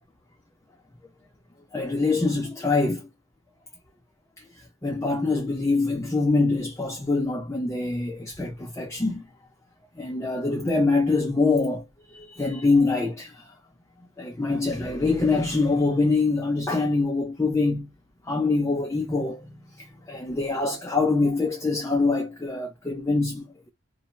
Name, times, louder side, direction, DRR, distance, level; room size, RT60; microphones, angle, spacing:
voice 1, 1.7-3.1 4.4-9.2 10.0-11.8 12.1-13.5 14.2-17.9 18.2-23.7, left 3 dB, 15° left, 0.3 m, -24 dB
2.6 x 2.1 x 2.7 m
head